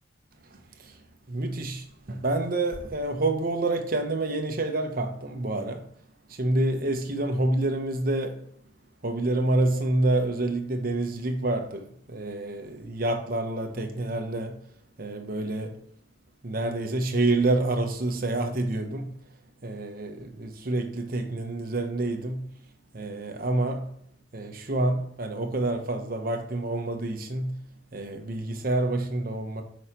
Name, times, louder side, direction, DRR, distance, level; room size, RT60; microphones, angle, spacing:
voice 1, 1.3-5.9 6.4-8.4 9.0-14.6 15.0-15.8 16.4-19.1 19.6-22.5 22.9-23.9 24.3-27.6 27.9-29.6, right 2 dB, 50° right, 0.9 m, -28 dB
6.3 x 5.1 x 2.9 m
head